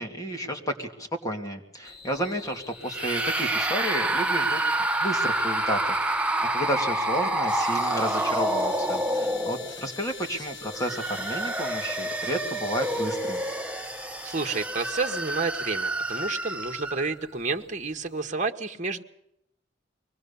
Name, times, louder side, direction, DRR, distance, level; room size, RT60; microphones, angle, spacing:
voice 1, 0.0-4.6 5.0-13.4, equal, 20° left, 2 dB, 2.6 m, -32 dB
sound 1, 1.8-18.3, left 4 dB, 55° left, 2.8 m, -49 dB
sound 2, 2.9-9.9 10.6-17.1, right 1 dB, 5° right, 1.0 m, -28 dB
sound 3, 7.5-14.9, left 5 dB, 80° left, 2.4 m, -44 dB
voice 2, 14.2-19.0, right 4 dB, 40° right, 6 dB, 1.6 m, -30 dB
24.0 x 19.0 x 7.0 m, 0.78 s
head